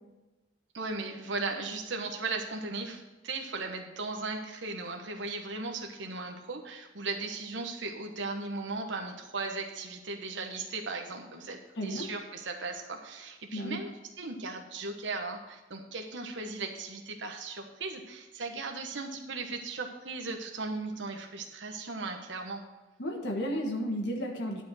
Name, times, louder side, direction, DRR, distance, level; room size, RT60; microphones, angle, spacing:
voice 1, 0.7-13.9 14.2-22.6, right 3 dB, 85° right, 3 dB, 1.2 m, -37 dB
voice 2, 11.8-12.1 13.5-13.8 23.0-24.6, equal, 70° left, 1 dB, 1.6 m, -33 dB
11.0 x 5.2 x 6.3 m, 1.1 s
head